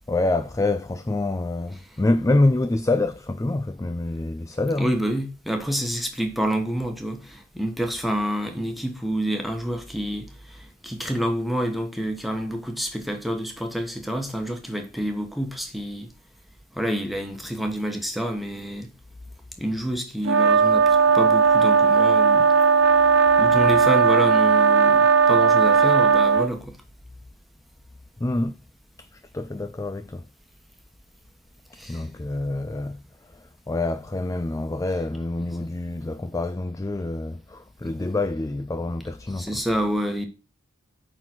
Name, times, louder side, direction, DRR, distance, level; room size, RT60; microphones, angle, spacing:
voice 1, 0.1-4.9 28.2-28.6 29.1-30.2 31.9-33.0 33.3-39.6, left 2 dB, 15° left, 0.3 m, -26 dB
voice 2, 4.8-16.1 16.7-18.9 19.6-22.5 23.4-26.8 31.8-32.0 35.4-35.5 39.3-40.3, equal, ahead, 1.3 m, -28 dB
sound 1, 20.2-26.5, right 5 dB, 70° right, 0.5 m, -17 dB
9.0 x 4.0 x 6.0 m
head